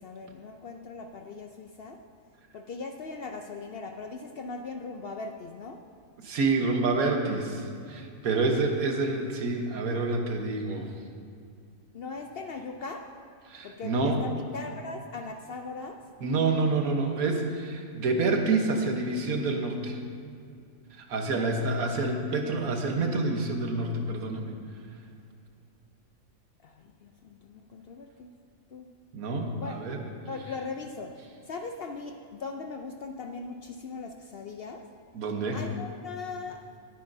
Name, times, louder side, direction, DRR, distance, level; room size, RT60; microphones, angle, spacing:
voice 1, 0.0-2.0 2.5-5.8 11.9-13.1 13.6-16.0 26.6-28.3 28.7-28.9 29.6-29.8 30.3-31.1 31.5-34.8 35.5-36.6, left 4 dB, 65° left, 5 dB, 0.6 m, -39 dB
voice 2, 6.2-10.9 13.5-14.2 16.2-20.0 20.9-24.5 29.1-30.0 35.1-35.6, right 3 dB, 90° right, 3 dB, 1.5 m, -28 dB
19.5 x 9.3 x 2.7 m, 2.3 s
omnidirectional pair, 1.5 m